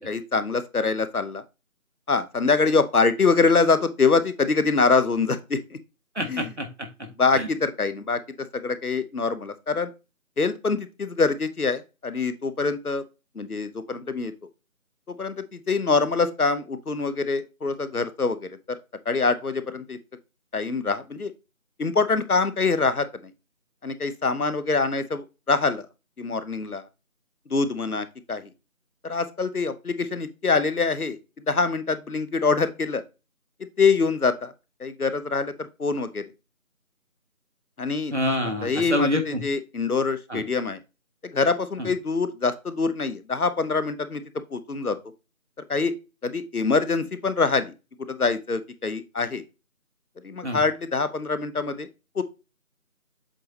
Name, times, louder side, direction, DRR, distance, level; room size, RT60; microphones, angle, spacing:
voice 1, 0.0-1.4 2.1-5.8 6.3-6.4 7.2-8.2 8.5-9.9 10.4-13.0 13.4-14.3 15.1-18.8 19.1-20.0 20.5-21.3 21.8-23.3 23.8-25.9 26.2-26.9 27.5-28.5 29.0-31.2 31.5-33.0 33.8-34.5 34.8-36.2 37.8-38.1 38.6-40.8 41.2-44.2 44.5-45.0 45.7-45.9 46.2-47.7 48.1-49.4 50.2-51.9 52.2-52.3, left 4 dB, 85° left, 12 dB, 1.0 m, -24 dB
voice 2, 6.1-7.5 38.1-39.4 40.3-40.4 41.8-41.9 50.4-50.6, left 1 dB, 50° right, 3 dB, 1.6 m, -28 dB
7.6 x 3.3 x 4.2 m, 0.28 s
figure-of-eight pair, 180°, 43 cm